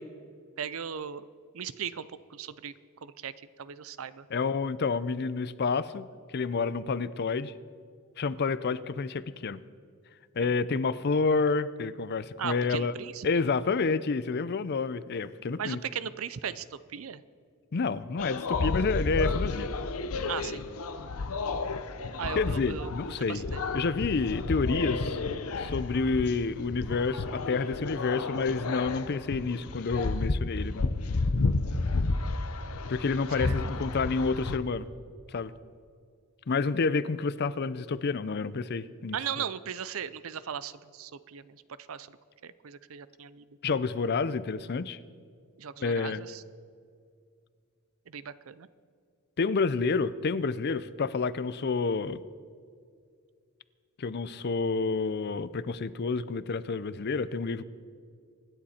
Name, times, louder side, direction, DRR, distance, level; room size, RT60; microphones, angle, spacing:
voice 1, 0.6-1.2 1.5-2.7 3.0-3.3 3.6-4.3 10.4-10.6 12.4-13.4 15.6-17.2 20.3-20.6 22.2-22.9 23.2-23.6 33.3-33.6 39.1-41.6 41.9-42.2 42.4-43.5 45.6-46.4 48.1-48.7, right 7 dB, 70° right, 15 dB, 0.5 m, -37 dB
voice 2, 4.3-6.1 6.3-7.5 8.2-9.6 10.4-12.9 13.2-15.8 17.7-19.7 22.4-23.5 23.7-25.2 25.6-30.9 32.9-34.9 35.3-35.5 36.5-39.2 43.6-45.0 45.8-46.2 49.4-52.2 54.0-57.6, left 4 dB, 50° left, 16 dB, 0.5 m, -29 dB
sound 1, 18.2-34.6, left 3 dB, 85° left, 0.8 m, -31 dB
25.0 x 10.0 x 4.3 m, 2.2 s
head